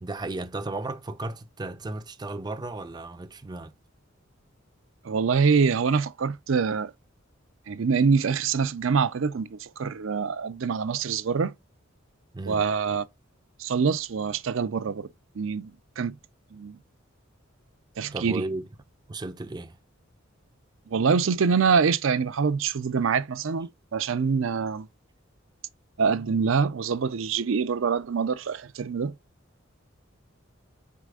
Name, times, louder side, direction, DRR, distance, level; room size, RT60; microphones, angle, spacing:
voice 1, 0.0-3.7 12.3-12.7 18.1-18.7 19.1-19.8, right 2 dB, 20° right, 0.5 m, -34 dB
voice 2, 5.0-6.9 7.7-11.5 12.5-13.0 13.6-15.1 15.4-16.2 16.5-16.8 18.0-18.4 20.9-24.9 26.0-29.1, right 5 dB, 75° right, 0.5 m, -25 dB
4.7 x 4.1 x 2.4 m
head